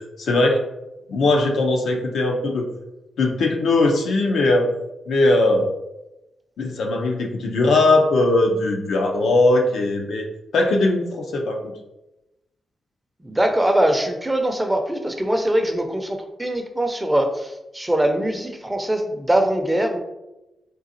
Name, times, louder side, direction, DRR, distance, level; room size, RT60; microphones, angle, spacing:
voice 1, 0.2-0.6 1.1-2.7 3.2-4.7 5.1-5.7 6.6-10.3 10.5-11.7, left 2 dB, 80° left, 1 dB, 0.5 m, -19 dB
voice 2, 13.2-20.0, right 1 dB, 15° right, 5 dB, 0.5 m, -22 dB
3.8 x 2.4 x 2.6 m, 0.96 s
cardioid pair, 60°, 0 cm